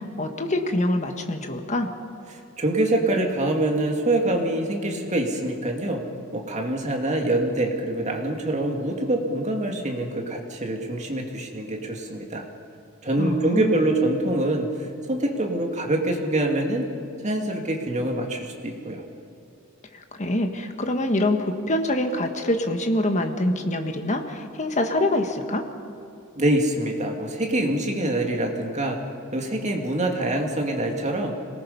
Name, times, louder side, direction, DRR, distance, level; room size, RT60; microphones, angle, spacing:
voice 1, 0.0-1.9 13.2-13.8 19.9-25.6, left 1 dB, 35° left, 5 dB, 1.5 m, -25 dB
voice 2, 2.6-6.0 6.3-12.4 13.0-16.9 17.2-19.0 26.4-29.0 29.3-31.3, right 1 dB, 35° right, 1 dB, 2.3 m, -25 dB
25.5 x 18.5 x 5.6 m, 2.7 s
head